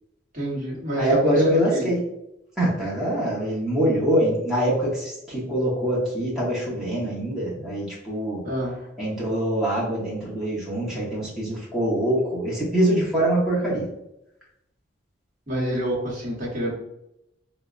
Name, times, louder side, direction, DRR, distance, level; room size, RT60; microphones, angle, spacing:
voice 1, 0.3-1.9 8.4-8.8 15.5-16.7, equal, 45° right, -4 dB, 1.0 m, -28 dB
voice 2, 1.0-2.0 2.6-8.4 9.0-13.9, right 1 dB, 5° right, -7 dB, 0.8 m, -24 dB
4.7 x 2.0 x 2.4 m, 0.84 s
head